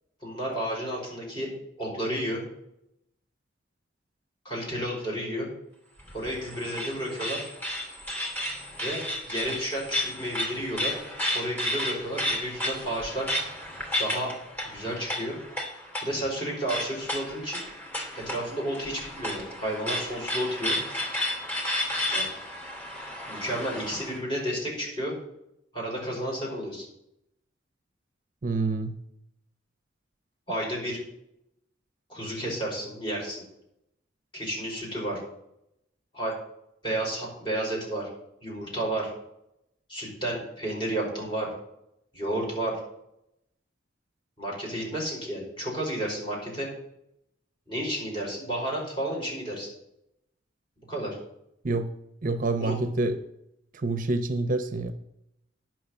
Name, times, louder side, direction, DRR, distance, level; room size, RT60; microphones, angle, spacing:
voice 1, 0.2-1.5 1.8-2.4 4.5-5.5 6.1-7.4 8.7-11.0 11.3-13.3 14.0-14.3 14.7-15.4 16.0-17.6 18.2-20.8 22.1-22.3 23.3-25.1 25.7-26.9 30.5-31.0 32.1-33.4 34.3-35.2 36.1-36.3 36.8-38.1 38.4-39.1 39.9-41.5 42.1-42.8 44.4-46.7 47.7-49.7 50.9-51.2 52.6-52.8, right 1 dB, 25° left, -4 dB, 5.2 m, -31 dB
sound 1, 6.0-24.2, left 1 dB, 10° left, 2.5 m, -33 dB
voice 2, 28.4-28.9 51.6-51.9 52.2-53.2 53.7-54.9, right 3 dB, 45° right, 9 dB, 0.7 m, -27 dB
10.0 x 6.2 x 8.0 m, 0.81 s
head